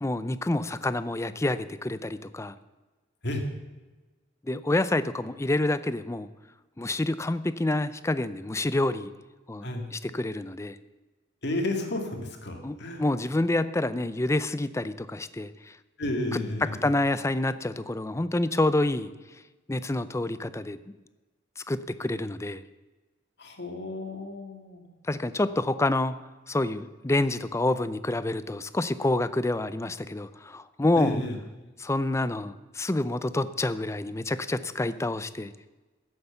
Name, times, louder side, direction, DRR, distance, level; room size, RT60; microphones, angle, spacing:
voice 1, 0.0-2.5 4.4-6.3 6.8-9.1 9.5-10.8 12.6-15.8 16.6-19.1 19.7-20.8 21.6-22.6 25.0-26.1 26.5-31.2 31.8-35.5, left 2 dB, 15° left, 14 dB, 0.5 m, -28 dB
voice 2, 11.4-13.0 16.0-16.8 23.4-24.8 31.0-31.4, left 1 dB, 60° left, 3 dB, 2.2 m, -32 dB
14.5 x 8.0 x 7.0 m, 1.2 s
head